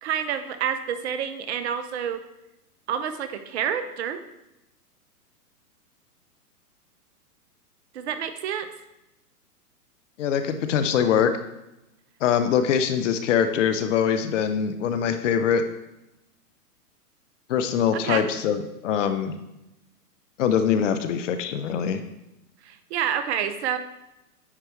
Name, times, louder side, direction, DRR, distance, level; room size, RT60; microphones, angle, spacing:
voice 1, 0.0-2.2 2.9-4.2 7.9-8.7 17.9-18.3 22.6-23.8, right 8 dB, 45° right, 10 dB, 0.7 m, -28 dB
voice 2, 10.2-11.3 12.2-15.6 17.5-19.3 20.4-22.0, left 8 dB, 50° left, 8 dB, 0.8 m, -23 dB
9.6 x 4.5 x 3.1 m, 0.91 s
hypercardioid pair, 120°, 47 cm